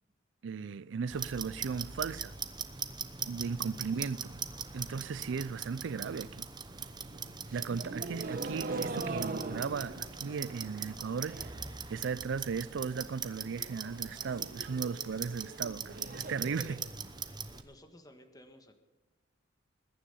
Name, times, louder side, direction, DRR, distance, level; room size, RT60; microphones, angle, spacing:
voice 1, 0.4-2.4 3.2-4.4 4.7-6.5 7.5-11.5 11.9-16.8, right 5 dB, 70° right, 0.4 m, -36 dB
Clock, 1.1-17.6, right 6 dB, 20° right, 0.9 m, -41 dB
voice 2, 3.6-4.1 8.0-8.1 8.4-8.5 16.6-16.8 17.6-18.8, left 1 dB, 20° left, 1.5 m, -57 dB
sound 1, 6.7-11.7 12.0-12.5 12.8-12.9 13.2-13.3 13.6-17.6, right 2 dB, 50° right, 1.1 m, -42 dB
21.5 x 10.0 x 5.5 m
head